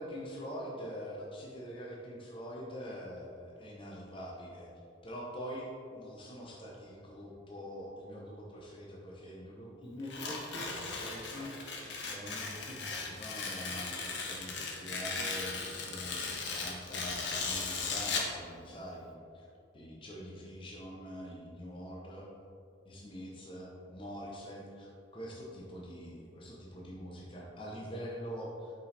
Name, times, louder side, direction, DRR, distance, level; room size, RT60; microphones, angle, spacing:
voice 1, 0.0-4.7 5.0-11.8 12.1-19.5 19.7-22.3 22.8-28.7, equal, 25° left, -3 dB, 0.7 m, -44 dB
Tearing, 10.0-18.4, left 4 dB, 55° left, 0.8 m, -37 dB
5.3 x 5.2 x 4.1 m, 2.4 s
head